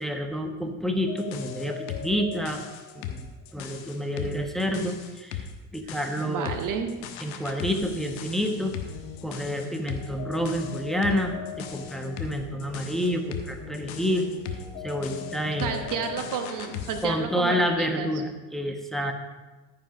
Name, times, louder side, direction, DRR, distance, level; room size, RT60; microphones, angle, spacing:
voice 1, 0.0-2.6 2.9-3.3 3.5-6.5 7.2-8.8 9.2-14.3 14.8-15.8 17.0-19.1, equal, ahead, 4 dB, 1.2 m, -29 dB
sound 1, 1.1-17.1, left 7 dB, 60° left, 1.2 m, -37 dB
voice 2, 6.2-7.1 15.6-18.1, right 6 dB, 50° right, 6 dB, 1.2 m, -31 dB
14.0 x 5.7 x 5.1 m, 1.2 s
figure-of-eight pair, 55°, 42 cm